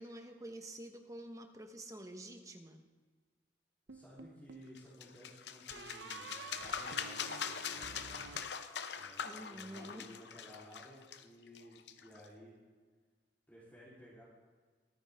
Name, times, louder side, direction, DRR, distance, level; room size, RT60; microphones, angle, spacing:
voice 1, 0.0-2.8 9.2-10.1, right 1 dB, 20° right, 5 dB, 1.0 m, -48 dB
voice 2, 3.9-8.2 8.9-12.5 13.5-14.2, equal, 10° left, -10 dB, 3.4 m, -56 dB
sound 1, 3.9-4.7 5.7-9.2, right 5 dB, 85° right, 0.7 m, -51 dB
sound 2, 4.7-12.3, left 7 dB, 70° left, 0.7 m, -43 dB
23.5 x 9.7 x 3.5 m, 1.5 s
head